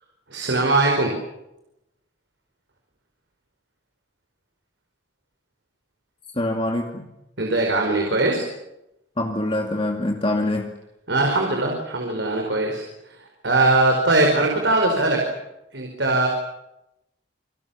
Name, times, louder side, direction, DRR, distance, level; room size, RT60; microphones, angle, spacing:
voice 1, 0.3-1.1 7.4-8.5 11.1-15.3 15.7-16.3, right 2 dB, 75° right, 1 dB, 5.0 m, -21 dB
voice 2, 6.3-7.1 9.2-10.7, left 1 dB, 30° left, 2 dB, 2.4 m, -24 dB
28.5 x 24.0 x 7.3 m, 0.87 s
head